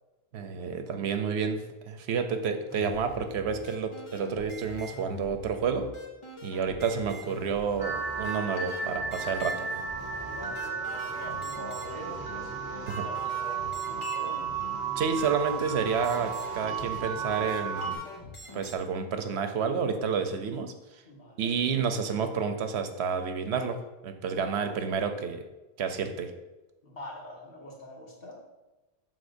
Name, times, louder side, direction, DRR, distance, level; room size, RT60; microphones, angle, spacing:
voice 1, 0.3-5.9 6.4-9.5 12.9-13.0 15.0-18.0 18.5-20.7 21.4-23.8 24.0-25.4 25.8-26.3, right 6 dB, 85° right, 7 dB, 0.9 m, -30 dB
sound 1, 2.7-18.8, left 2 dB, 30° left, 0.9 m, -45 dB
sound 2, 7.8-18.0, right 6 dB, 55° right, 1.0 m, -34 dB
voice 2, 10.0-14.4 21.0-21.6 24.3-25.0 26.8-28.4, equal, 60° left, -3 dB, 1.8 m, -45 dB
11.5 x 3.9 x 2.6 m, 1.1 s
omnidirectional pair, 1.1 m